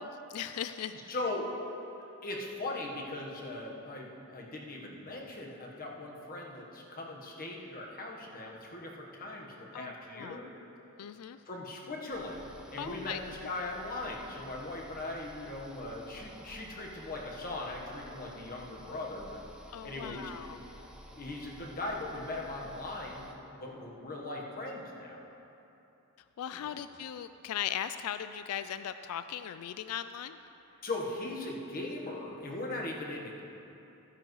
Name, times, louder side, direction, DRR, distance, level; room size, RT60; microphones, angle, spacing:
voice 1, 0.0-1.1 9.7-10.4 11.0-11.4 12.8-13.2 19.7-20.6 26.4-30.4, left 10 dB, 75° left, 11 dB, 0.3 m, -38 dB
voice 2, 1.1-1.5 2.2-10.5 11.5-12.4 12.7-19.4 19.8-20.4 21.2-23.3 23.6-25.2 26.6-26.7 30.8-33.4, left 2 dB, 40° left, -1 dB, 1.3 m, -39 dB
sound 1, 12.1-23.3, equal, 5° right, 0.7 m, -52 dB
14.5 x 9.8 x 3.2 m, 3.0 s
head